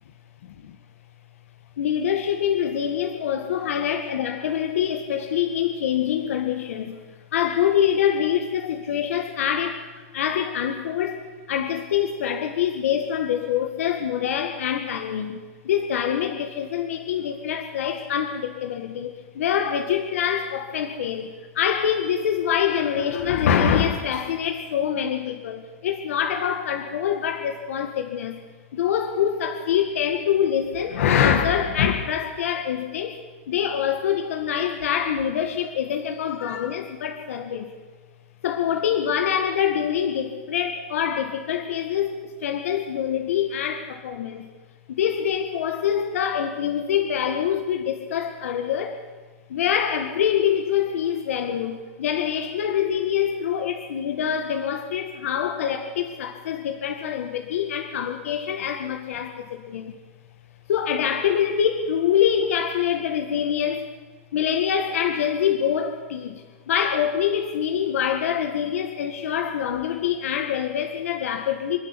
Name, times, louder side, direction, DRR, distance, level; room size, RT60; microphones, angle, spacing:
voice 1, 1.8-7.0 7.3-9.8 10.1-28.4 28.7-33.2 33.5-37.7 38.4-44.5 44.9-49.0 49.5-59.9 60.7-63.9 64.3-71.8, left 9 dB, 85° left, 4 dB, 2.0 m, -25 dB
26.5 x 11.5 x 10.0 m, 1.4 s
supercardioid pair, 145°, 7 cm